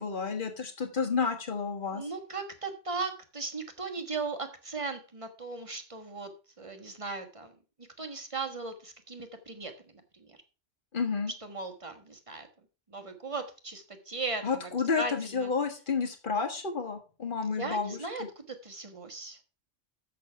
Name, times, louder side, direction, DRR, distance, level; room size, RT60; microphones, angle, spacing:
voice 1, 0.0-2.0 10.9-11.3 14.4-18.0, left 5 dB, 45° left, 5 dB, 1.7 m, -30 dB
voice 2, 1.9-6.3 6.6-7.5 7.8-10.4 11.4-12.5 12.9-15.5 17.6-19.4, right 3 dB, 30° right, 5 dB, 1.4 m, -38 dB
7.5 x 6.7 x 5.7 m, 0.35 s
omnidirectional pair, 1.2 m